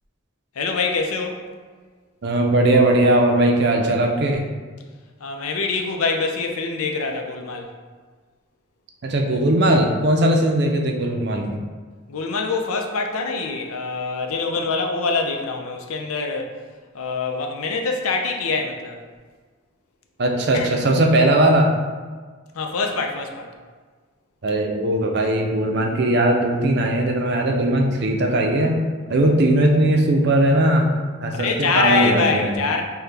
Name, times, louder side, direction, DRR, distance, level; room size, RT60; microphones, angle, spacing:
voice 1, 0.6-1.4 5.2-7.7 10.3-10.4 12.1-16.5 16.9-19.0 20.5-20.7 22.5-23.5 31.4-32.8, left 4 dB, 90° left, 3 dB, 0.5 m, -24 dB
voice 2, 2.2-4.4 9.0-11.6 20.2-21.7 24.4-28.8 29.1-30.9 31.2-32.5, right 1 dB, 50° right, 2 dB, 0.5 m, -19 dB
5.7 x 2.3 x 3.4 m, 1.5 s
head